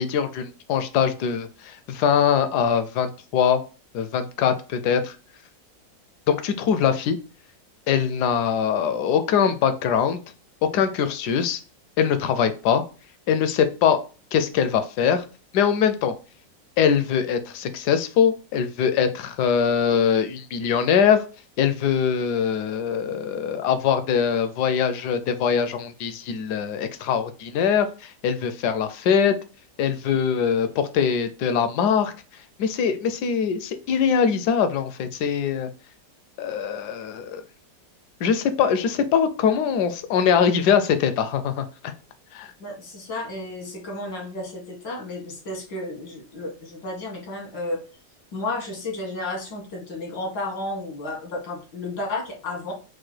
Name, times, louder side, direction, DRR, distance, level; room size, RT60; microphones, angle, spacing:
voice 1, 0.0-3.6 3.9-5.2 6.3-7.2 7.9-10.2 10.6-11.6 12.0-12.8 13.3-14.0 14.3-15.2 15.5-16.1 16.8-21.2 21.6-29.4 29.8-32.1 32.6-35.7 36.4-37.4 38.2-41.9 42.3-42.5, left 7 dB, 75° left, 10 dB, 1.1 m, -22 dB
voice 2, 42.6-47.8 48.3-52.7, left 2 dB, 90° left, 0 dB, 2.2 m, -32 dB
4.7 x 2.2 x 4.4 m, 0.35 s
omnidirectional pair, 1.9 m